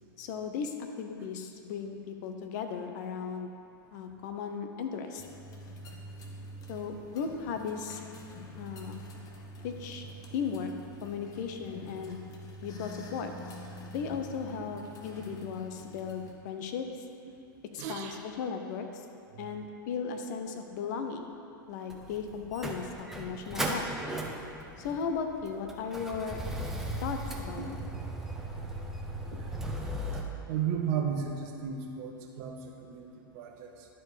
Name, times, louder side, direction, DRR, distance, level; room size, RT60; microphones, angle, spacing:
voice 1, 0.2-3.5 3.9-5.2 6.7-8.0 8.6-9.0 9.6-10.1 10.3-10.7 11.0-12.2 12.6-13.3 13.9-16.9 17.7-19.0 19.4-21.3 21.7-23.9 24.8-26.4 27.0-27.8, left 6 dB, 55° left, 5 dB, 0.8 m, -36 dB
sound 1, 5.2-16.3, equal, 30° left, 1.0 m, -46 dB
voice 2, 17.8-18.2 27.6-27.7 29.3-29.5 30.5-33.9, right 7 dB, 50° right, 1 dB, 1.1 m, -35 dB
Motor vehicle (road), 21.9-30.2, right 1 dB, 5° right, 0.9 m, -37 dB
11.5 x 4.6 x 4.9 m, 2.6 s
figure-of-eight pair, 95°, 12 cm